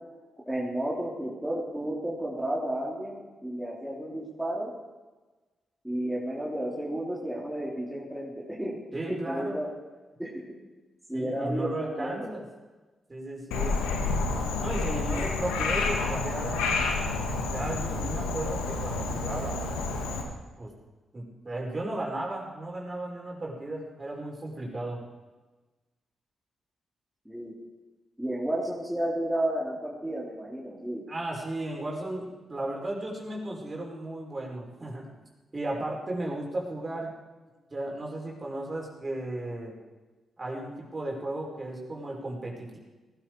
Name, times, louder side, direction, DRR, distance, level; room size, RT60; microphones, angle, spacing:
voice 1, 0.5-4.7 5.8-8.8 9.1-9.7 10.2-10.4 11.1-12.3 27.3-27.5 28.2-31.1, right 1 dB, 5° right, -4 dB, 3.6 m, -32 dB
voice 2, 8.9-9.6 11.1-12.4 13.1-13.8 14.6-16.9 17.4-19.6 20.6-20.7 21.1-25.0 31.1-35.1 35.5-37.1 37.7-39.7 40.4-42.8, right 1 dB, 35° right, -2 dB, 5.0 m, -35 dB
Frog, 13.5-20.2, left 3 dB, 90° left, 1.8 m, -29 dB
19.0 x 12.5 x 4.8 m, 1.2 s
supercardioid pair, 45°, 0 cm